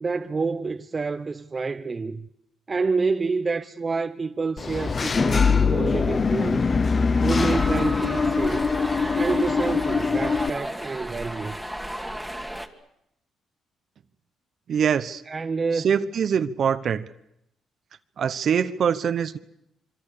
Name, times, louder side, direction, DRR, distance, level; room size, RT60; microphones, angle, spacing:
voice 1, 0.0-2.3 2.7-6.7 7.2-8.7 9.2-11.6 15.3-15.9, right 4 dB, 30° right, 0.9 m, -28 dB
Engine / Mechanisms, 4.6-10.5, left 5 dB, 35° left, 0.8 m, -23 dB
sound 1, 7.3-12.7, equal, ahead, 2.2 m, -33 dB
voice 2, 14.7-15.2 15.7-17.1 18.2-19.4, right 7 dB, 60° right, 1.0 m, -23 dB
26.5 x 24.0 x 6.8 m
cardioid pair, 90°, 0 cm